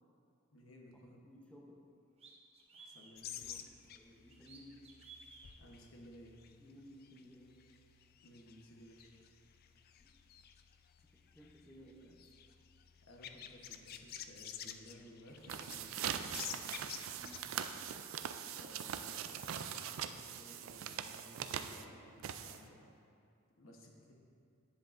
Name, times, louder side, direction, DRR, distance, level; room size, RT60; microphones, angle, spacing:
voice 1, 0.5-1.2 2.7-3.4 5.6-6.4 8.2-9.2 13.0-16.7 18.4-22.8 23.6-24.1, left 1 dB, 80° left, 0 dB, 1.1 m, -58 dB
voice 2, 1.2-1.9 3.4-4.9 6.6-7.6 10.0-10.1 11.3-12.3 17.2-17.6, equal, 5° left, -2 dB, 0.7 m, -58 dB
sound 1, 1.4-1.5 2.2-3.1 4.3-5.5, right 4 dB, 30° right, 0.8 m, -56 dB
sound 2, 3.2-17.5, left 9 dB, 50° left, 0.3 m, -52 dB
sound 3, 15.3-22.9, right 8 dB, 75° right, 0.4 m, -42 dB
10.5 x 7.5 x 2.5 m, 2.4 s
head